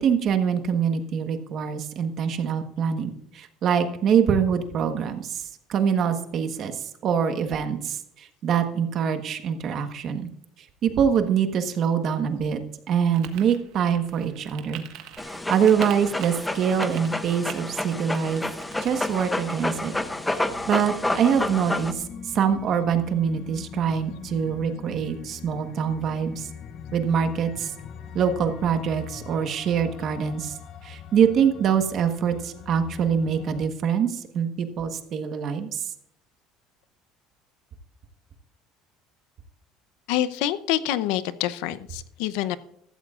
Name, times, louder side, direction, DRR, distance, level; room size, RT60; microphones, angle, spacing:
voice 1, 0.0-10.3 10.8-12.6 12.9-14.8 15.2-18.4 18.8-19.9 20.3-22.1 22.3-26.5 26.9-27.7 28.1-30.5 30.8-35.9, right 7 dB, 40° right, 7 dB, 1.3 m, -24 dB
sound 1, 13.1-19.2, right 10 dB, 65° right, 1.4 m, -43 dB
Dog, 15.2-21.9, left 1 dB, 5° left, 0.7 m, -30 dB
sound 2, 16.6-33.7, left 6 dB, 40° left, 1.1 m, -43 dB
voice 2, 40.1-42.6, left 12 dB, 80° left, 14 dB, 0.7 m, -26 dB
15.0 x 13.5 x 2.5 m, 0.76 s
cardioid pair, 155°, 0 cm